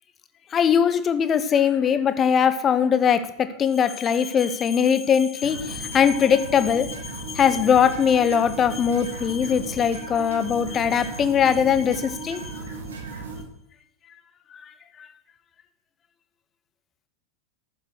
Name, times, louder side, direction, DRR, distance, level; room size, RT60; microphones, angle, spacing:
voice 1, 0.5-6.9 7.3-12.6, left 7 dB, 25° left, 12 dB, 0.9 m, -21 dB
sound 1, 5.4-13.4, right 4 dB, 65° right, 2.0 m, -36 dB
14.0 x 7.2 x 6.6 m, 0.74 s
figure-of-eight pair, 90°, 0 cm